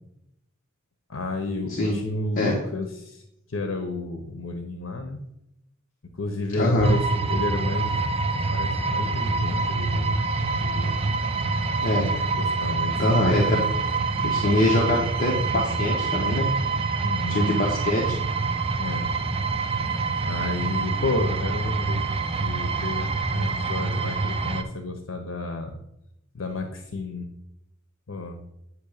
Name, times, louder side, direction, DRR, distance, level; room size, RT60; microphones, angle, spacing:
voice 1, 1.1-5.2 6.2-8.0 8.5-10.2 10.5-11.0 12.4-13.6 17.0-17.5 18.8-19.1 20.2-22.1 22.4-25.8 26.3-27.3 28.1-28.4, left 2 dB, 80° left, 5 dB, 0.9 m, -31 dB
voice 2, 1.7-2.0 2.4-2.6 6.6-6.9 11.8-12.2 13.0-13.6 14.2-16.5 17.3-18.2, left 1 dB, 45° left, -2 dB, 1.3 m, -23 dB
sound 1, 6.8-24.6, right 4 dB, 30° right, 0.6 m, -26 dB
9.2 x 3.1 x 6.6 m, 0.84 s
head